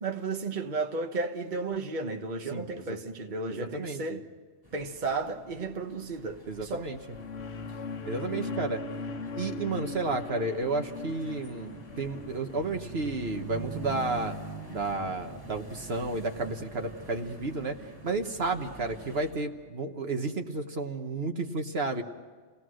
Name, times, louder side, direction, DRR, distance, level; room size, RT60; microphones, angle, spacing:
voice 1, 0.0-4.2 4.7-6.9, right 3 dB, 40° right, 1.3 m, -33 dB
voice 2, 2.5-3.0 3.5-4.2 6.5-7.0 8.1-8.8 9.4-14.4 14.7-17.7 18.0-22.0, right 3 dB, 60° right, 1.5 m, -32 dB
sound 1, 4.6-19.3, right 2 dB, 20° right, 6.8 m, -45 dB
sound 2, 6.8-13.5, left 4 dB, 60° left, 1.3 m, -40 dB
29.5 x 18.0 x 6.4 m
omnidirectional pair, 1.2 m